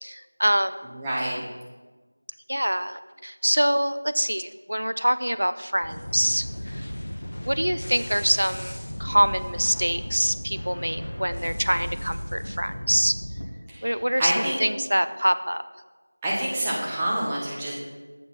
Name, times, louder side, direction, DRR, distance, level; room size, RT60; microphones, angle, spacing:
voice 1, 0.0-0.8 2.5-6.9 7.5-13.2 13.8-15.6, equal, 70° right, 12 dB, 0.3 m, -25 dB
voice 2, 0.9-1.4 13.7-13.9 14.2-14.6 16.2-17.7, right 1 dB, 5° right, -7 dB, 0.5 m, -27 dB
sound 1, 5.8-13.5, equal, 35° left, 0.7 m, -35 dB
7.6 x 4.2 x 5.5 m, 1.3 s
figure-of-eight pair, 175°, 0 cm